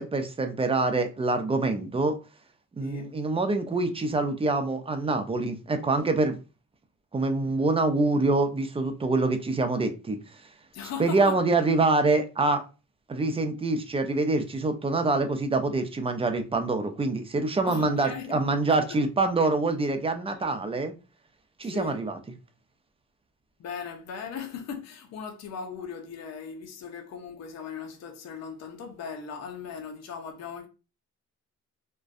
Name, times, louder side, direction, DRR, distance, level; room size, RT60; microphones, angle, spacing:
voice 1, 0.0-2.2 2.8-6.4 7.1-10.2 11.0-12.6 13.1-20.9 21.6-22.2, right 3 dB, 20° right, 0.4 m, -25 dB
voice 2, 2.8-3.1 10.7-11.4 17.6-18.8 20.3-20.4 21.6-22.0 23.6-30.7, left 6 dB, 60° left, 0.6 m, -38 dB
2.5 x 2.2 x 2.4 m
cardioid pair, 90°, 30 cm